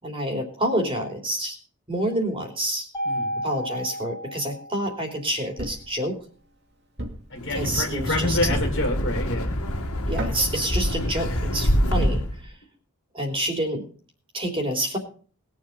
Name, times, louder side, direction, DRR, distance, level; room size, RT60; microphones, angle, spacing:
voice 1, 0.0-1.6 1.9-2.9 3.4-6.1 7.5-8.4 10.1-12.5 13.1-13.8 14.3-15.0, right 1 dB, 25° right, 3 dB, 3.3 m, -28 dB
Mallet percussion, 2.9-5.2, equal, 15° left, 2.9 m, -32 dB
Thump thud, 5.6-6.0 7.0-7.4 8.5-8.9 10.2-10.6, right 1 dB, 50° right, 2.4 m, -33 dB
voice 2, 7.3-9.6, left 1 dB, 50° left, 2 dB, 2.7 m, -27 dB
Wind, 7.4-12.4, equal, 75° left, 2.3 m, -26 dB
20.5 x 7.5 x 5.5 m, 0.41 s
head